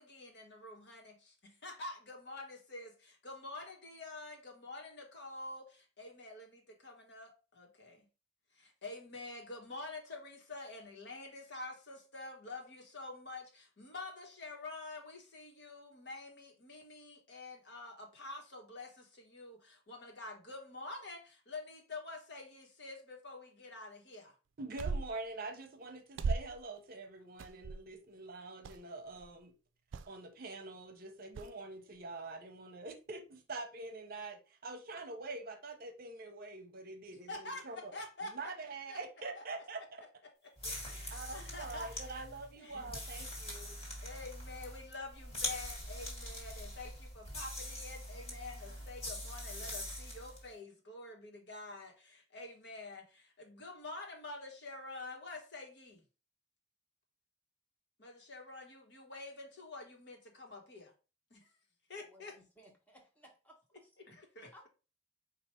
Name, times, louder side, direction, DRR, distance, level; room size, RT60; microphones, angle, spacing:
voice 1, 0.0-8.1 8.5-24.3 37.3-38.5 38.9-39.0 39.3-39.4 40.4-40.5 40.9-42.2 42.6-42.9 44.0-56.0 58.0-60.9 61.3-61.5 61.9-62.3 64.0-64.5, left 2 dB, 60° left, 1.3 m, -48 dB
voice 2, 24.6-29.5 30.1-37.9 38.2-40.0 40.6-43.8, right 3 dB, 50° right, 0.8 m, -45 dB
sound 1, 24.8-25.3 26.2-26.6 27.4-27.9 28.6-28.8 29.1-29.3 29.9-30.1 31.3-31.5, right 4 dB, 80° right, 0.4 m, -37 dB
sound 2, 40.6-50.5, left 1 dB, 35° left, 1.7 m, -43 dB
voice 3, 62.1-63.9 64.5-64.7, equal, 10° left, 1.1 m, -61 dB
4.6 x 2.5 x 4.3 m
head